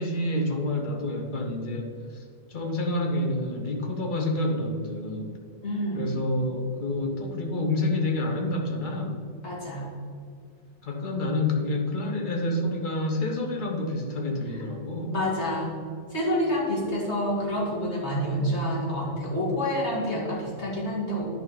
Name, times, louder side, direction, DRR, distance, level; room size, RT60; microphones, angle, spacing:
voice 1, 0.0-1.9 2.5-5.3 5.9-9.2 10.8-15.2, left 1 dB, 45° left, 2 dB, 1.2 m, -28 dB
voice 2, 5.6-6.1 9.4-9.9 15.1-15.7 16.1-21.2, equal, 70° left, -4 dB, 2.3 m, -28 dB
10.5 x 5.4 x 4.1 m, 2.2 s
omnidirectional pair, 1.2 m